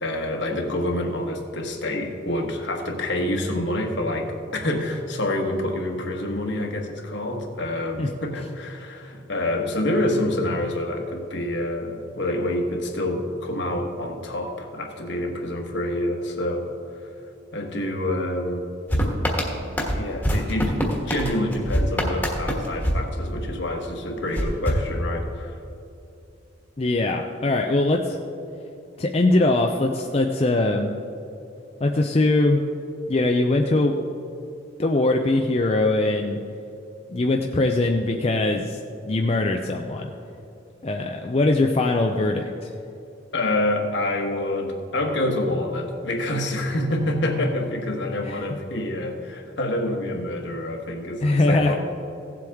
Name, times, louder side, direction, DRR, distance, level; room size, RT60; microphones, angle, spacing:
voice 1, 0.0-17.1 17.5-18.7 19.9-25.6 43.3-51.7, left 1 dB, 65° left, 2 dB, 1.4 m, -27 dB
sound 1, 18.9-23.8 24.3-25.6, equal, 10° left, 1.4 m, -25 dB
voice 2, 26.8-28.2 29.0-30.9 31.8-32.6 33.1-33.9 34.8-36.4 37.1-38.8 39.0-40.1 40.8-42.7 48.2-48.4 51.2-51.7, left 2 dB, 30° left, 2 dB, 0.5 m, -21 dB
16.5 x 7.7 x 3.6 m, 2.8 s
head